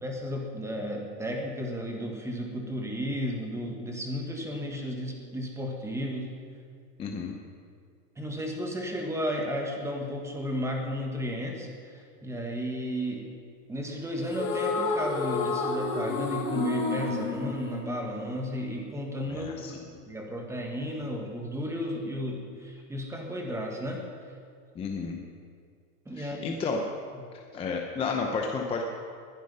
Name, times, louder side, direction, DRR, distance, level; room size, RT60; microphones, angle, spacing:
voice 1, 0.0-6.3 8.2-13.3 13.7-19.5 20.1-24.0 26.0-26.6, equal, 5° right, 1 dB, 1.6 m, -33 dB
voice 2, 7.0-7.4 19.3-19.7 24.8-25.2 26.1-26.8 27.3-28.8, left 4 dB, 15° left, 2 dB, 0.7 m, -32 dB
sound 1, 14.2-18.7, left 4 dB, 75° left, 2.9 m, -30 dB
20.5 x 10.5 x 5.5 m, 2.2 s
supercardioid pair, 160°, 46 cm